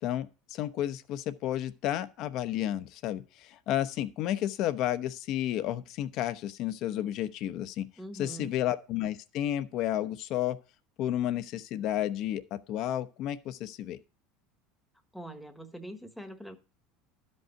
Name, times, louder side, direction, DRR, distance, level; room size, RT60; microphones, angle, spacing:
voice 1, 0.0-7.9 8.1-10.6 11.0-14.0, left 12 dB, 50° left, 0.9 m, -32 dB
voice 2, 8.0-8.5 15.1-16.6, right 1 dB, ahead, 1.3 m, -43 dB
12.5 x 5.5 x 5.8 m
supercardioid pair, 140°, 0 cm